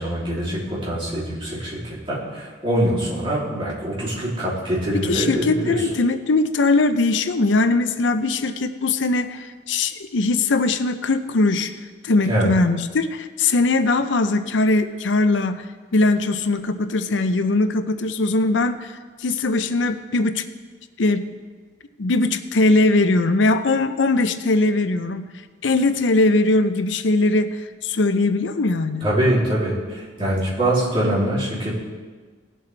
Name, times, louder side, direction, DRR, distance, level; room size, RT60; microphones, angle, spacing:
voice 1, 0.0-5.9 12.2-12.5 29.0-31.7, right 1 dB, 30° right, -7 dB, 3.1 m, -24 dB
voice 2, 4.9-11.7 12.0-15.6 15.9-18.9 19.2-20.4 21.0-21.3 22.0-25.3 25.6-29.1, left 2 dB, 85° left, 10 dB, 0.6 m, -20 dB
18.5 x 7.6 x 3.4 m, 1.5 s
head